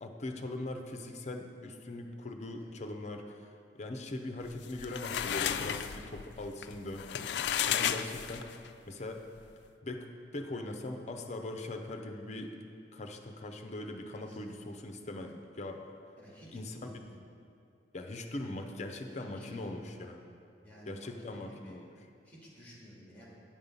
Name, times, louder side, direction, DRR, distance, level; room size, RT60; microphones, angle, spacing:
voice 1, 0.0-3.5 3.7-8.5 8.9-9.2 9.8-12.6 12.9-15.8 16.5-16.8 17.9-20.2 20.9-21.9, left 2 dB, 40° left, 4 dB, 0.6 m, -41 dB
sound 1, 4.5-8.7, left 9 dB, 70° left, 0.3 m, -33 dB
voice 2, 14.2-14.6 16.2-17.1 19.1-20.1 20.6-21.8 22.2-23.3, equal, 10° left, -5 dB, 2.1 m, -53 dB
8.9 x 5.4 x 5.4 m, 2.5 s
head